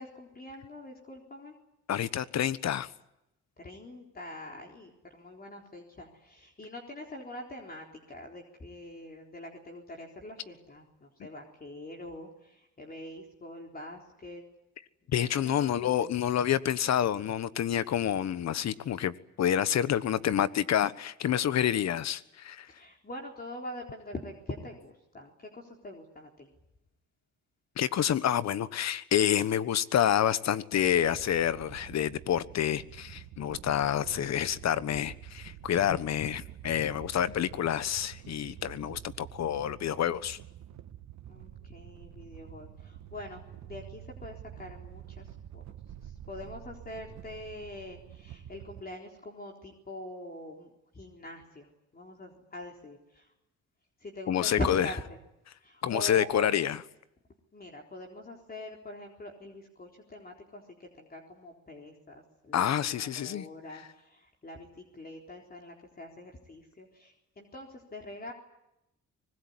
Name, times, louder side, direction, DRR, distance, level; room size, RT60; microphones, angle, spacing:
voice 1, 0.0-1.5 3.6-14.5 15.0-15.9 22.7-26.5 41.3-45.6 46.0-53.3 54.0-55.2 55.6-56.5 57.5-68.3, left 1 dB, 30° left, 4.0 m, -43 dB
voice 2, 1.9-2.9 15.1-22.7 27.8-40.4 54.3-54.8 55.8-56.8 62.5-63.4, left 10 dB, 60° left, 1.3 m, -28 dB
sound 1, 30.8-48.8, right 11 dB, 70° right, 1.4 m, -48 dB
25.0 x 20.5 x 9.7 m
cardioid pair, 90°, 30 cm